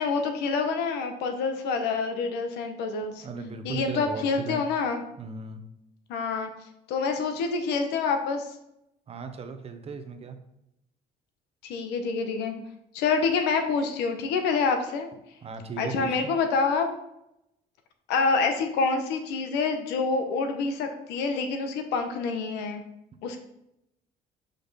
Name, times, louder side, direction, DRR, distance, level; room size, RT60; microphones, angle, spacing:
voice 1, 0.0-3.3 3.6-5.0 6.1-6.5 6.9-8.4 11.6-12.5 12.9-15.1 15.8-16.9 18.1-22.8 23.2-23.4, left 4 dB, 85° left, 6 dB, 0.9 m, -27 dB
voice 2, 3.2-4.6 5.2-5.6 9.1-10.4 15.4-16.3, right 4 dB, 35° right, 7 dB, 0.8 m, -37 dB
5.3 x 5.2 x 4.1 m, 0.83 s
cardioid pair, 110°, 17 cm